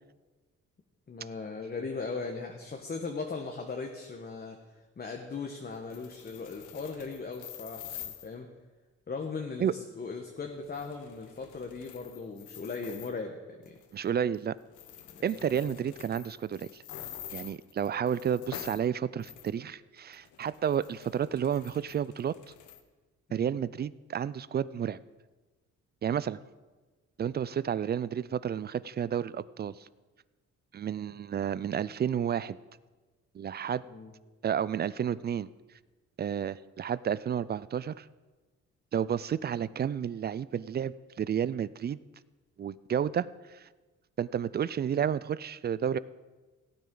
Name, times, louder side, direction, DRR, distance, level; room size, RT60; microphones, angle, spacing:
voice 1, 1.1-4.6 5.0-8.5 9.1-13.8 15.1-15.8 23.3-23.6 33.9-34.1, left 4 dB, 30° left, 3 dB, 1.2 m, -38 dB
sound 1, 5.7-8.3 10.5-13.2 13.6-14.1 14.3-14.4 14.7-18.8 19.2-19.5 20.0-22.8, left 10 dB, 80° left, 1.0 m, -47 dB
voice 2, 13.9-14.6 15.2-16.8 17.3-22.3 23.3-25.0 26.0-26.4 27.2-29.9 30.7-32.6 33.3-33.8 34.4-35.5 36.2-38.1 38.9-42.0 42.6-43.6 44.2-46.0, right 8 dB, 35° right, 19 dB, 0.4 m, -31 dB
17.0 x 9.3 x 3.9 m, 1.2 s
cardioid pair, 90°, 30 cm